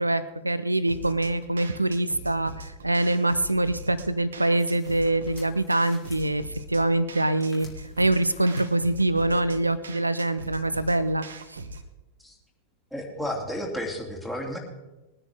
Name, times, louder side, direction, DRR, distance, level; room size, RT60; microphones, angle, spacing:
voice 1, 0.0-6.4 6.7-7.7 8.0-11.6, right 2 dB, 85° right, 15 dB, 0.6 m, -24 dB
sound 1, 0.9-11.9, right 2 dB, 70° right, 1.0 m, -41 dB
sound 2, 4.6-6.3 7.4-8.6, left 5 dB, 25° left, 3.3 m, -53 dB
voice 2, 12.9-14.6, equal, 5° left, -1 dB, 2.9 m, -32 dB
21.0 x 9.9 x 3.6 m, 1.1 s
figure-of-eight pair, 90°, 0 cm